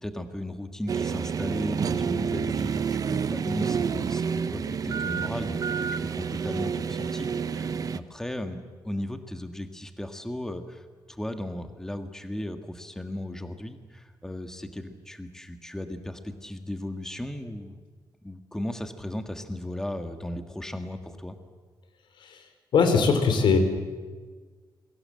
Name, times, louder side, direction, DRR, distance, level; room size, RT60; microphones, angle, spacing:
voice 1, 0.0-5.8 6.1-17.8 18.2-21.4, left 1 dB, 5° left, 7 dB, 1.8 m, -36 dB
sound 1, 0.9-8.0, right 6 dB, 50° right, 1.0 m, -29 dB
voice 2, 22.7-23.6, left 5 dB, 90° left, 8 dB, 3.9 m, -21 dB
28.5 x 22.5 x 7.8 m, 1.5 s
wide cardioid pair, 145°, 8 cm